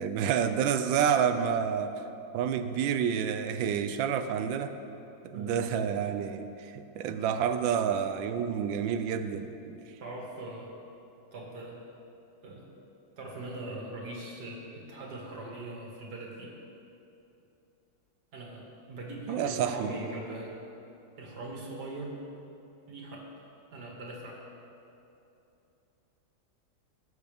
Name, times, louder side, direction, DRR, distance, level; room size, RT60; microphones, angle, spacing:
voice 1, 0.0-1.9 2.3-4.8 5.2-9.8 19.3-20.0, right 8 dB, 75° right, 9 dB, 1.3 m, -29 dB
voice 2, 5.3-5.7 10.0-10.7 11.3-11.8 12.4-12.7 13.2-16.5 18.3-20.6 21.2-22.2 22.9-23.3 23.7-24.4, right 2 dB, 55° right, -2 dB, 2.3 m, -41 dB
18.5 x 8.0 x 3.5 m, 2.8 s
omnidirectional pair, 2.2 m